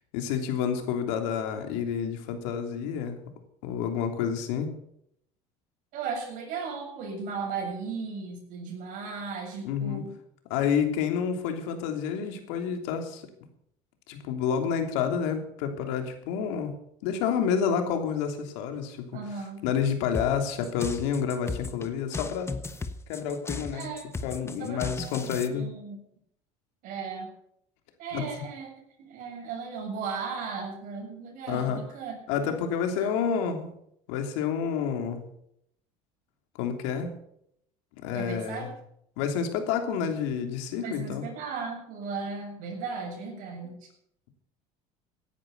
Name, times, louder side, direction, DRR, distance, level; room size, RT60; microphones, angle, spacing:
voice 1, 0.1-3.2 3.6-4.7 9.6-10.0 10.5-13.2 14.1-16.7 17.0-22.6 23.1-23.9 24.2-25.7 28.1-28.2 31.5-31.8 32.3-33.7 34.1-35.2 36.6-37.1 38.0-38.7 39.2-41.3, left 7 dB, 85° left, 5 dB, 3.2 m, -29 dB
voice 2, 5.9-10.1 19.1-19.6 23.7-24.1 24.6-26.0 26.8-27.3 28.0-28.7 29.0-32.2 38.1-38.7 40.8-43.9, right 5 dB, 65° right, 1 dB, 7.4 m, -36 dB
sound 1, 20.1-25.5, left 3 dB, 15° left, 1.2 m, -36 dB
17.5 x 10.5 x 6.8 m, 0.72 s
supercardioid pair, 115°, 15 cm